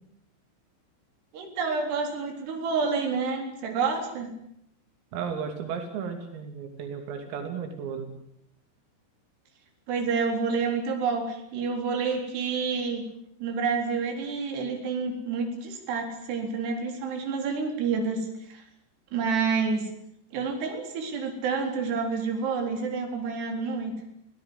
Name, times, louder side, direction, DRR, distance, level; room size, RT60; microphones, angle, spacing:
voice 1, 1.3-4.3 9.9-13.1 13.4-18.6 19.1-19.9 20.3-23.9, right 5 dB, 55° right, 4 dB, 5.8 m, -29 dB
voice 2, 5.1-8.1, right 6 dB, 85° right, 5 dB, 5.4 m, -34 dB
26.0 x 17.0 x 9.7 m, 0.73 s
omnidirectional pair, 5.9 m